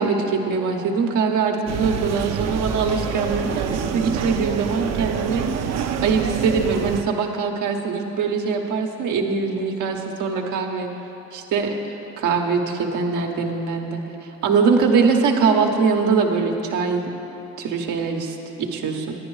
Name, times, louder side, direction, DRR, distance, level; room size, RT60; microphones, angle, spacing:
voice 1, 0.0-5.7 6.0-10.9 11.3-14.0 14.4-17.1 17.6-19.2, right 5 dB, 85° right, 2 dB, 1.1 m, -22 dB
sound 1, 1.7-7.0, right 7 dB, 60° right, 0.6 m, -26 dB
10.5 x 9.6 x 4.8 m, 3.0 s
cardioid pair, 90°, 30 cm